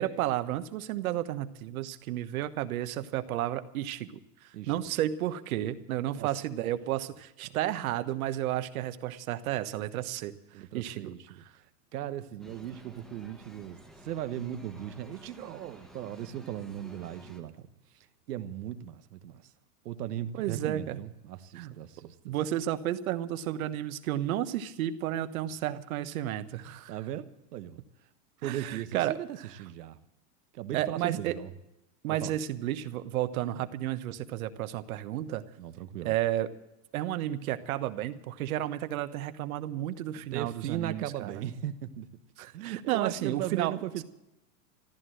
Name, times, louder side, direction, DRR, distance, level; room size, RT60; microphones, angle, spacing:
voice 1, 0.0-4.1 4.4-10.3 10.7-11.1 20.4-21.0 21.5-21.8 22.2-26.9 28.4-29.2 30.7-31.4 32.0-35.4 36.0-36.5 36.9-41.4 42.4-43.7, right 13 dB, 65° right, 1.3 m, -32 dB
voice 2, 10.5-17.7 18.3-19.5 19.8-22.3 26.6-27.8 28.4-30.0 30.5-31.5 32.1-32.3 35.6-36.2 40.2-42.1 42.5-44.0, right 11 dB, 90° right, 1.4 m, -37 dB
sound 1, 12.4-17.4, equal, ahead, 1.2 m, -53 dB
14.5 x 13.0 x 7.7 m
supercardioid pair, 165°, 46 cm